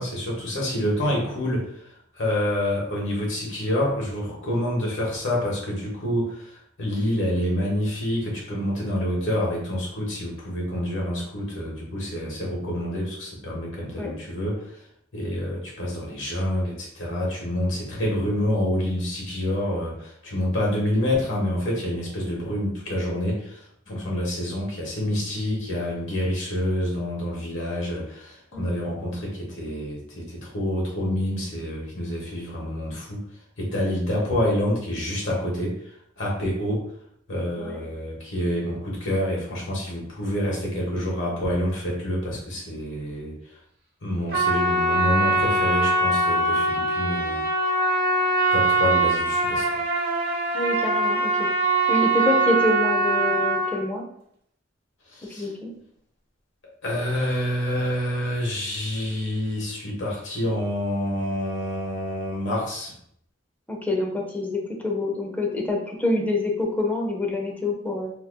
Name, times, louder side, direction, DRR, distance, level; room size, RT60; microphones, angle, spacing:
voice 1, 0.0-1.6 2.1-14.8 15.1-23.6 23.9-33.2 33.6-35.7 36.2-36.8 37.3-43.3 44.0-47.4 48.5-49.8 55.1-55.5 56.6-62.9, left 1 dB, 70° left, -2 dB, 1.2 m, -27 dB
Trumpet, 44.3-53.8, right 2 dB, 55° right, 0.8 m, -22 dB
voice 2, 50.5-51.5 51.9-54.0 55.4-55.7 63.7-68.1, left 2 dB, 10° left, 0 dB, 0.6 m, -26 dB
3.7 x 2.8 x 2.2 m, 0.68 s
head